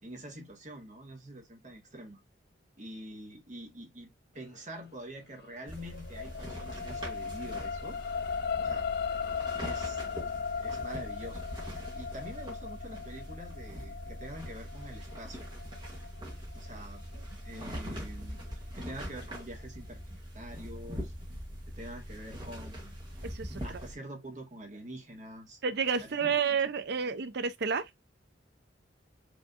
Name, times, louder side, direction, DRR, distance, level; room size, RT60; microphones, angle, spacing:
voice 1, 0.0-2.2 2.8-8.3 8.6-8.9 9.6-10.0 10.6-11.4 11.9-15.5 16.5-17.0 17.4-21.1 21.7-23.0 23.6-25.6 26.0-26.6, right 1 dB, 40° right, 1.7 m, -46 dB
sound 1, 5.3-17.9 18.4-18.5, left 6 dB, 60° left, 0.5 m, -37 dB
sound 2, 5.7-23.9, equal, 25° right, 2.0 m, -42 dB
voice 2, 23.2-23.8 25.6-27.9, right 6 dB, 60° right, 0.5 m, -30 dB
5.1 x 3.6 x 2.5 m
head